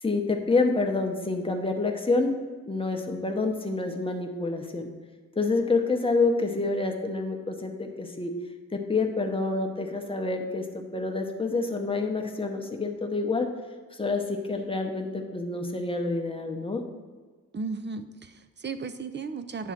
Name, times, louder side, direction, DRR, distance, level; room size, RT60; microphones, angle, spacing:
voice 1, 0.0-2.3 2.7-4.9 5.4-8.3 8.7-13.5 13.9-16.8, left 3 dB, 15° left, 3 dB, 0.7 m, -27 dB
voice 2, 17.5-19.7, right 4 dB, 35° right, 9 dB, 0.4 m, -35 dB
9.4 x 3.7 x 5.7 m, 1.3 s
wide cardioid pair, 165°, 34 cm